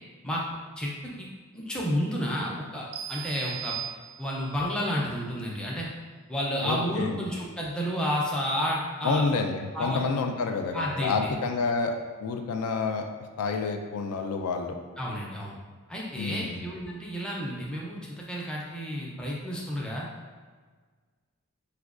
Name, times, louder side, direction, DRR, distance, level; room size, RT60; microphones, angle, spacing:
voice 1, 0.8-1.3 1.5-3.8 4.2-5.9 6.3-9.2 9.7-10.0 10.7-11.3 15.0-15.6 15.9-20.1, equal, 5° left, -4 dB, 0.4 m, -31 dB
sound 1, 2.9-4.6, right 12 dB, 80° right, 0.4 m, -38 dB
voice 2, 6.6-7.2 9.0-11.9 12.2-13.0 13.4-14.8 16.2-16.6, left 4 dB, 75° left, 5 dB, 0.3 m, -28 dB
4.8 x 2.2 x 2.4 m, 1.5 s
head